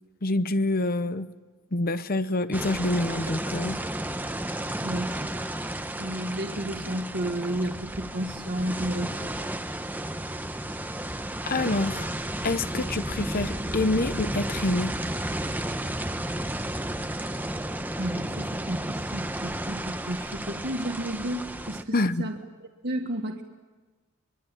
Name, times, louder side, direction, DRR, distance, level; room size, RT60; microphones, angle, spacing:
voice 1, 0.2-1.3 1.7-3.8 11.5-12.1 12.4-14.9 21.9-22.2, left 2 dB, 45° left, 12 dB, 0.9 m, -26 dB
sound 1, 2.5-21.8, right 1 dB, 10° right, 1.0 m, -32 dB
voice 2, 4.8-5.3 6.0-9.3 18.0-23.4, right 1 dB, 50° right, 3 dB, 1.6 m, -32 dB
24.0 x 23.0 x 9.2 m, 1.3 s
head